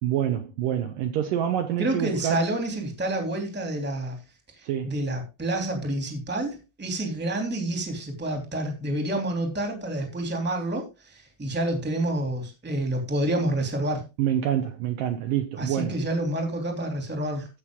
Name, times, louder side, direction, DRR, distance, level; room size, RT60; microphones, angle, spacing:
voice 1, 0.0-2.4 4.6-4.9 14.2-16.0, right 10 dB, 70° right, 2.3 m, -27 dB
voice 2, 1.8-4.2 4.8-14.0 15.6-17.5, right 1 dB, 5° right, 2.1 m, -28 dB
15.0 x 6.4 x 3.7 m
omnidirectional pair, 4.6 m